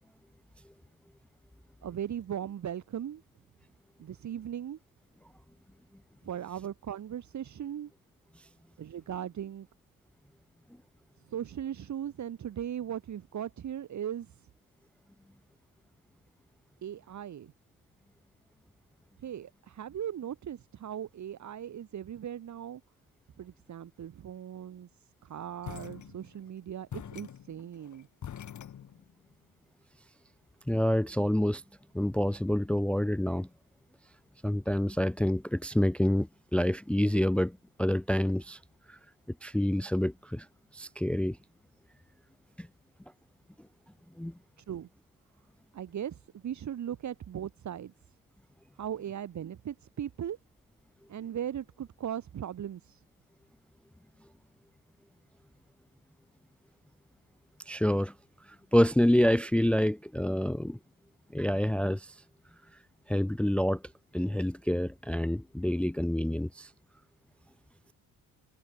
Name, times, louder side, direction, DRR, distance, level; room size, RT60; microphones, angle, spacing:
voice 1, 1.8-3.2 4.0-4.8 6.2-7.9 8.8-9.7 11.3-14.3 16.8-17.5 19.2-22.8 23.4-24.9 25.2-28.1 44.6-44.9 45.7-47.9 48.8-50.4 51.1-53.0, right 10 dB, 50° right, 2.4 m, -38 dB
sound 1, 25.6-26.5 26.9-29.3, left 9 dB, 50° left, 4.2 m, -44 dB
voice 2, 30.7-31.6 31.9-33.5 34.4-38.6 38.9-39.0 39.4-40.5 40.7-41.4 42.6-42.7 44.2-44.3 57.7-58.1 58.7-60.8 61.3-62.1 63.1-63.8 64.1-66.7, left 1 dB, 5° left, 0.6 m, -27 dB
cardioid pair, 145°, 37 cm